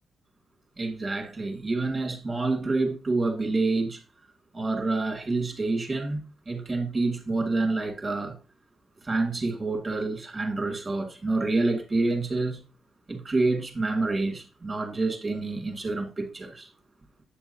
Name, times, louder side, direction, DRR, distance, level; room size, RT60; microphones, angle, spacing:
voice 1, 0.8-4.0 4.5-8.4 9.0-12.6 13.1-16.7, right 3 dB, 20° right, 2.4 m, -28 dB
8.3 x 6.9 x 2.8 m
cardioid pair, 95°, 0 cm